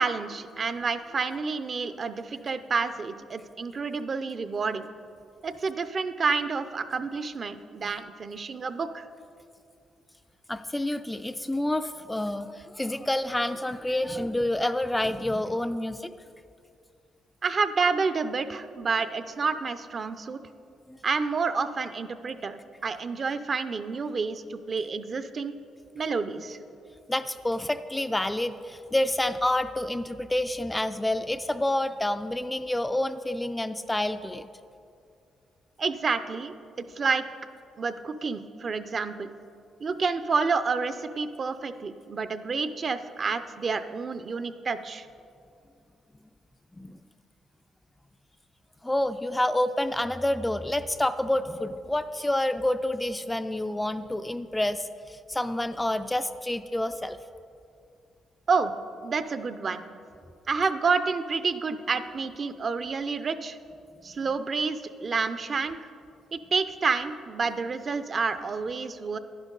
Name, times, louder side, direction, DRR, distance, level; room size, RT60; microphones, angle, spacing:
voice 1, 0.0-4.9 5.4-9.1 17.4-20.4 21.0-22.6 22.8-25.5 25.9-26.6 35.8-37.2 37.8-39.3 39.8-45.1 58.5-58.7 59.0-59.8 60.5-63.6 64.0-65.8 66.3-69.2, right 4 dB, 40° right, 11 dB, 0.5 m, -29 dB
voice 2, 10.5-16.1 20.9-21.0 27.1-34.5 46.8-47.0 48.8-57.2, left 1 dB, 10° left, 10 dB, 0.3 m, -28 dB
10.5 x 10.5 x 3.8 m, 2.4 s
cardioid pair, 90°, 0 cm